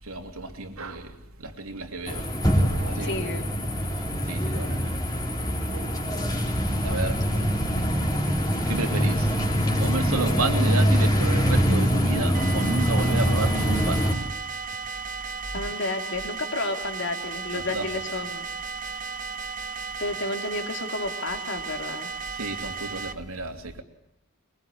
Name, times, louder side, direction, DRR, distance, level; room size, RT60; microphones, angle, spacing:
voice 1, 0.0-3.2 4.0-4.9 5.7-6.4 6.8-7.5 8.7-9.3 9.8-14.1 17.5-17.9 22.3-23.8, right 2 dB, 85° right, 3.0 m, -32 dB
sound 1, 2.1-14.1, equal, 20° left, 3.6 m, -24 dB
voice 2, 3.0-3.4 15.5-18.5 20.0-22.1, left 2 dB, 55° left, 3.4 m, -31 dB
sound 2, 12.3-23.1, right 4 dB, 40° right, 1.1 m, -35 dB
23.5 x 23.0 x 9.8 m
head